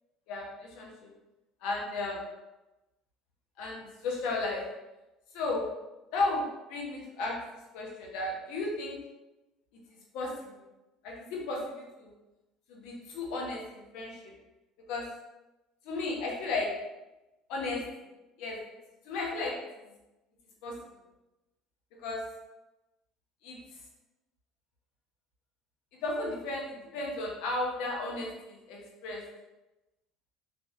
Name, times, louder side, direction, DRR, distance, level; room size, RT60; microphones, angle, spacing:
voice 1, 0.3-0.9 1.6-2.2 3.6-4.6 5.3-5.6 6.1-7.4 7.7-9.0 10.1-10.5 11.0-11.7 12.0-12.1 12.7-14.3 14.9-15.1 15.8-16.7 17.5-17.8 18.4-18.6 19.0-19.5 20.6-20.8 22.0-22.2 23.4-23.6 26.0-29.2, left 2 dB, 75° left, -1 dB, 1.0 m, -34 dB
3.3 x 3.1 x 2.8 m, 1.0 s
supercardioid pair, 105°, 0 cm